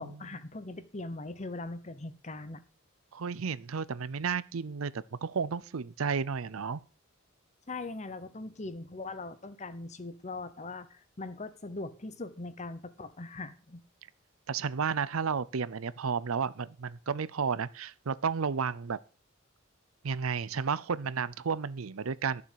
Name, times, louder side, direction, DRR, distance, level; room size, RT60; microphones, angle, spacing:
voice 1, 0.0-2.6 7.7-13.8, left 2 dB, 35° left, 0.9 m, -41 dB
voice 2, 3.1-6.8 14.5-19.0 20.0-22.4, right 6 dB, 85° right, 0.6 m, -32 dB
12.0 x 7.1 x 6.4 m
head